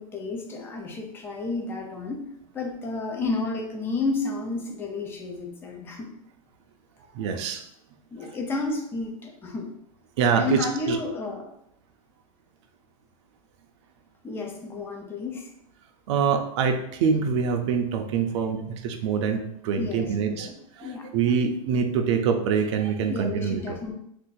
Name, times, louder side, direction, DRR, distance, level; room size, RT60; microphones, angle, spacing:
voice 1, 0.0-2.2 2.5-6.1 8.1-9.7 10.3-11.5 14.2-15.5 19.8-20.5 20.8-21.1 23.1-23.9, left 3 dB, 10° left, 2 dB, 0.4 m, -31 dB
voice 2, 7.1-7.6 10.2-11.0 16.1-20.5 20.8-23.7, right 6 dB, 50° right, 5 dB, 0.4 m, -25 dB
2.6 x 2.5 x 3.8 m, 0.75 s
supercardioid pair, 155°, 19 cm